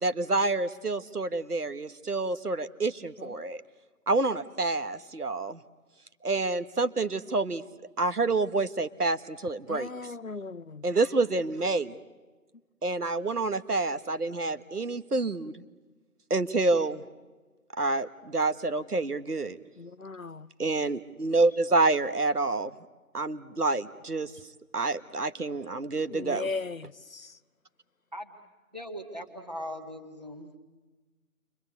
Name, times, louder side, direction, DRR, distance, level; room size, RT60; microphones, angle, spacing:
voice 1, 0.0-3.6 4.1-5.6 6.2-7.6 8.0-10.1 10.8-12.0 12.8-15.6 16.3-17.0 17.8-19.6 20.6-22.7 23.1-24.3 24.7-26.5, right 3 dB, 85° right, 1.6 m, -28 dB
voice 2, 9.7-10.8 19.8-20.5 26.1-27.4, left 4 dB, 65° left, 0.9 m, -38 dB
voice 3, 28.7-30.5, equal, 30° right, 1.9 m, -39 dB
29.5 x 24.5 x 8.3 m
figure-of-eight pair, 180°, 44 cm